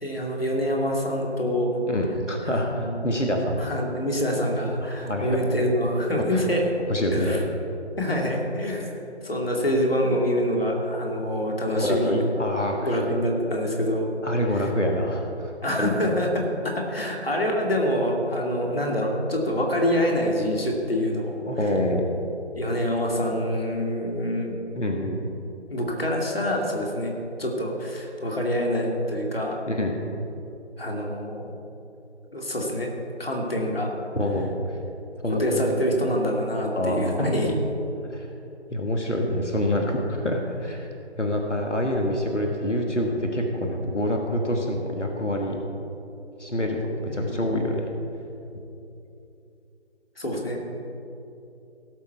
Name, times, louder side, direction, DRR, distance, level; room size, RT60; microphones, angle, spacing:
voice 1, 0.0-1.8 2.4-3.2 3.6-6.6 7.1-7.4 8.0-8.9 9.2-12.3 12.8-14.1 15.6-21.4 22.6-24.6 25.7-29.6 30.8-31.5 32.3-32.9 33.2-33.9 35.3-37.5 47.3-47.4 50.2-50.6, equal, 55° left, -1 dB, 2.4 m, -26 dB
voice 2, 1.9-3.6 4.8-5.4 6.2-6.4 6.9-7.4 11.8-13.0 14.2-15.9 21.5-22.0 24.8-25.3 29.7-30.0 34.2-34.8 35.2-35.8 36.7-37.3 38.1-38.3 38.7-40.9 41.2-45.6 46.4-47.9 48.5-48.6, left 1 dB, 90° left, 1 dB, 1.7 m, -26 dB
17.0 x 6.8 x 4.6 m, 2.8 s
figure-of-eight pair, 165°, 35 cm